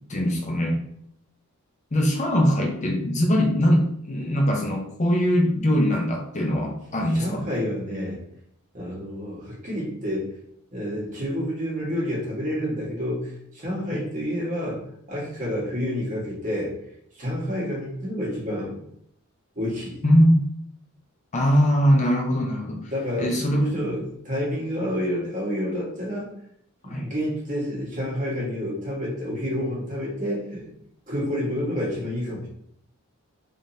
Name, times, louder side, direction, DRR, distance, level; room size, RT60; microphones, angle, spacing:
voice 1, 0.1-0.8 1.9-7.4 13.9-14.0 20.0-20.4 21.3-22.9 23.2-23.7 26.8-27.0, equal, 35° left, 1 dB, 0.6 m, -21 dB
voice 2, 7.1-8.2 8.7-10.3 10.7-14.8 15.1-16.7 17.1-18.8 19.5-20.0 22.9-23.3 23.6-26.3 26.8-30.7 31.1-32.5, equal, 35° right, -5 dB, 1.5 m, -29 dB
3.8 x 3.5 x 2.7 m, 0.70 s
head